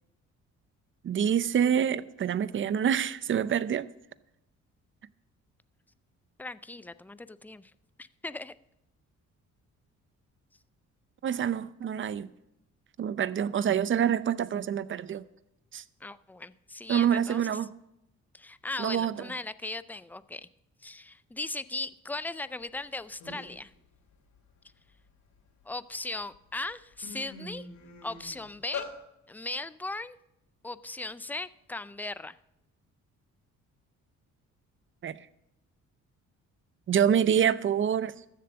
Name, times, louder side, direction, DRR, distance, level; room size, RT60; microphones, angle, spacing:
voice 1, 1.0-3.9 11.2-12.3 13.0-15.2 15.7-15.8 16.9-17.7 18.8-19.3 35.0-35.2 36.9-38.1, right 8 dB, 40° right, 0.6 m, -26 dB
voice 2, 6.4-7.7 8.0-8.5 16.0-17.6 18.3-20.5 20.8-23.7 25.7-27.7 28.0-28.9 29.3-30.2 30.6-32.4, left 2 dB, 5° left, 0.4 m, -38 dB
sound 1, 22.8-22.9 23.2-23.6 24.1-25.6 26.2-26.4 26.7-28.9, left 5 dB, 70° left, 3.0 m, -42 dB
14.0 x 7.6 x 6.9 m
cardioid pair, 90°, 30 cm